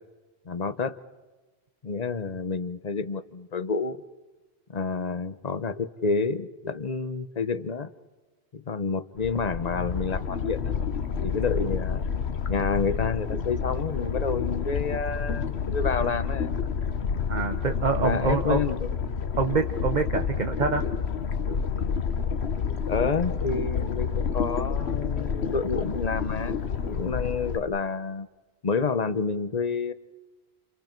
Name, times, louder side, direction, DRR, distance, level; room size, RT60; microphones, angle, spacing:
voice 1, 0.5-1.0 1.8-4.0 4.7-7.9 8.5-10.8 11.2-12.0 12.5-16.5 18.0-18.9 22.9-26.6 26.9-28.3 28.6-29.9, left 4 dB, 40° left, 13 dB, 1.0 m, -29 dB
sound 1, 9.2-27.6, left 6 dB, 85° left, 1.3 m, -29 dB
voice 2, 17.3-18.6 19.4-20.8, right 5 dB, 45° right, 6 dB, 1.2 m, -26 dB
29.5 x 29.0 x 4.5 m, 1.2 s
omnidirectional pair, 1.1 m